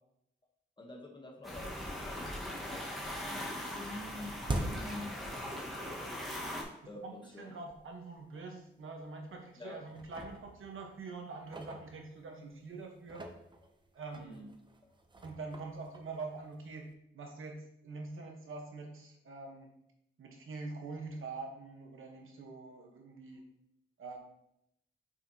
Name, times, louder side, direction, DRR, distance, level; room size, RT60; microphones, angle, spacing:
voice 1, 0.8-2.2 2.6-4.4 4.7-5.2 6.9-7.6 9.6-9.8 14.2-14.5, left 1 dB, 20° left, 2 dB, 1.0 m, -47 dB
sound 1, 1.4-6.6, left 1 dB, ahead, 1.4 m, -40 dB
sound 2, 3.6-5.9 6.2-6.3 7.1-7.2 7.7-7.8 8.1-8.3 9.0-9.5 9.9-12.5 12.9-16.9, right 1 dB, 25° right, 0.6 m, -44 dB
voice 2, 7.0-13.3 13.9-14.5 15.2-16.9 17.1-19.7 20.2-23.5 24.0-24.2, right 3 dB, 85° right, 2 dB, 1.1 m, -45 dB
7.2 x 5.7 x 2.8 m, 0.79 s
wide cardioid pair, 165°, 20 cm